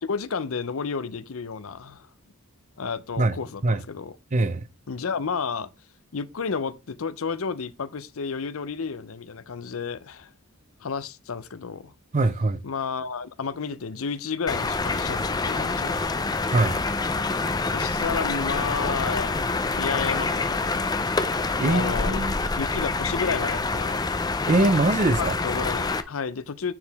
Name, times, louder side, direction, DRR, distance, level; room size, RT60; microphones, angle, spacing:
voice 1, 0.0-2.1 2.8-4.1 4.9-5.7 6.1-10.3 10.8-11.9 12.6-16.0 17.7-19.3 19.8-20.7 21.6-22.2 22.6-24.0 25.2-26.7, left 5 dB, 70° left, 0.6 m, -31 dB
voice 2, 4.3-4.6 12.1-12.6 16.5-16.8 21.6-22.3 24.5-25.3, right 2 dB, 35° right, 0.5 m, -22 dB
sound 1, 14.5-26.0, left 3 dB, 20° left, 0.5 m, -26 dB
9.7 x 4.8 x 3.4 m
head